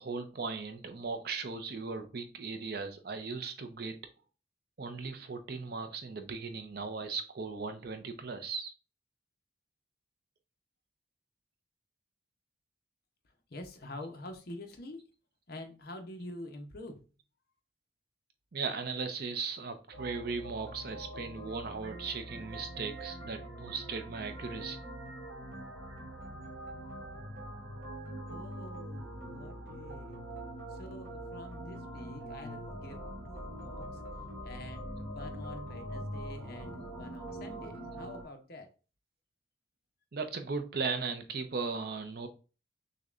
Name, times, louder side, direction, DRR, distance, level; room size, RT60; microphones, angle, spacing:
voice 1, 0.0-4.0 4.8-8.7 18.5-24.8 40.1-42.3, right 4 dB, 50° right, 0.5 m, -37 dB
voice 2, 13.5-15.0 15.5-17.0 28.3-30.2 30.7-34.0 34.4-38.7, left 1 dB, 50° left, 0.7 m, -47 dB
sound 1, 19.9-38.2, right 1 dB, 85° right, 1.5 m, -43 dB
6.3 x 2.2 x 2.4 m
head